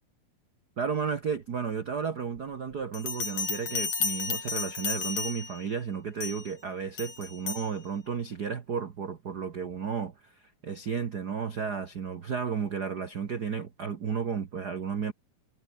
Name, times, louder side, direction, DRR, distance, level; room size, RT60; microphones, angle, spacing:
voice 1, 0.8-15.1, right 6 dB, 70° right, 0.9 m, -33 dB
Bell, 2.9-5.7 6.2-6.5 7.0-7.7, left 4 dB, 50° left, 5.9 m, -33 dB
omnidirectional pair, 4.0 m